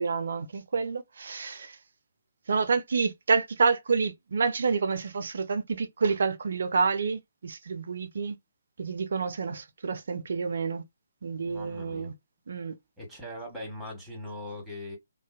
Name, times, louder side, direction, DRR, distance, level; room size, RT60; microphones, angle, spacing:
voice 1, 0.0-1.8 2.5-8.4 8.8-10.8 11.2-12.1 12.5-12.8, right 5 dB, 60° right, 0.5 m, -28 dB
voice 2, 11.4-12.1 13.0-15.0, left 1 dB, 5° right, 1.3 m, -40 dB
2.5 x 2.1 x 2.3 m
figure-of-eight pair, 135°, 0 cm